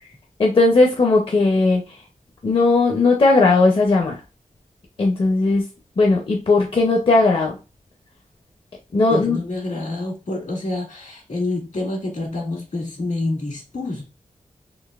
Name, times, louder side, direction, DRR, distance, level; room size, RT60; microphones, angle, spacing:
voice 1, 0.4-1.8 2.4-4.2 5.0-5.6 6.0-7.6 8.9-9.4, left 3 dB, 45° left, 0 dB, 0.6 m, -17 dB
voice 2, 9.1-14.0, left 2 dB, 75° left, -2 dB, 1.7 m, -27 dB
3.8 x 2.9 x 2.3 m, 0.30 s
wide cardioid pair, 115°, 13 cm